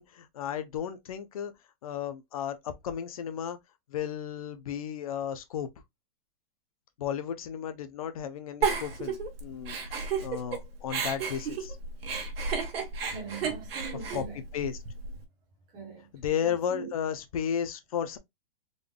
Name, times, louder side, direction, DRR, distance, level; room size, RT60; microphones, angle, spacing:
voice 1, 0.0-1.5 1.8-3.6 3.9-5.7 7.0-11.8 14.1-14.2 14.5-14.8 16.1-18.2, left 8 dB, 40° left, 0.6 m, -34 dB
Giggle, 8.6-10.6 10.9-15.1, right 5 dB, 80° right, 1.4 m, -32 dB
voice 2, 13.1-14.4 15.7-16.1 16.4-16.9, right 5 dB, 15° right, 1.0 m, -41 dB
3.9 x 3.3 x 2.2 m
hypercardioid pair, 175°, 29 cm